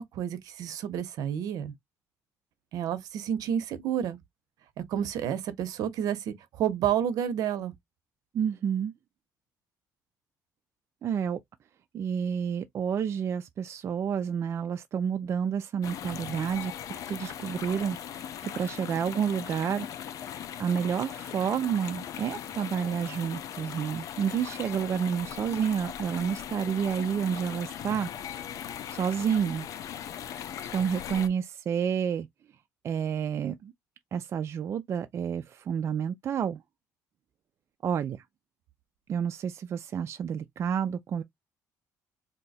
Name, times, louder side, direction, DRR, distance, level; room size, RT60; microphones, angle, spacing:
voice 1, 0.0-1.7 2.7-4.2 4.8-7.7, right 9 dB, 75° right, 0.7 m, -30 dB
voice 2, 8.3-8.9 11.0-11.4 11.9-18.0 18.4-19.9 20.6-28.1 28.9-29.7 30.7-32.3 32.8-33.7 34.1-36.6 37.8-38.2 39.1-41.2, right 7 dB, 45° right, 0.3 m, -29 dB
sound 1, 15.8-31.3, left 9 dB, 60° left, 0.5 m, -39 dB
2.7 x 2.2 x 4.1 m
cardioid pair, 130°, 6 cm